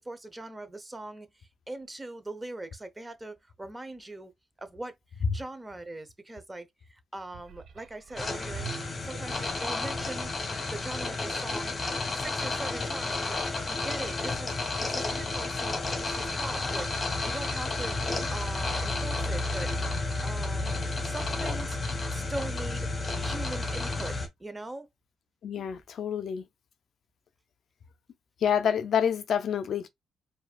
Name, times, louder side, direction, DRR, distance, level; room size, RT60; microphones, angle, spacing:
voice 1, 0.0-4.3 4.6-10.3 10.7-11.8 12.1-14.6 14.8-16.9 17.2-19.7 20.2-21.8 22.1-24.9 25.6-25.7, right 2 dB, 15° right, 0.8 m, -41 dB
sound 1, 7.2-9.9 10.5-10.6, right 7 dB, 60° right, 0.5 m, -45 dB
sound 2, 8.2-24.3, left 3 dB, 30° left, 1.3 m, -31 dB
voice 2, 25.4-26.4 28.4-29.9, left 8 dB, 60° left, 0.5 m, -27 dB
4.7 x 2.7 x 2.4 m
cardioid pair, 90°, 0 cm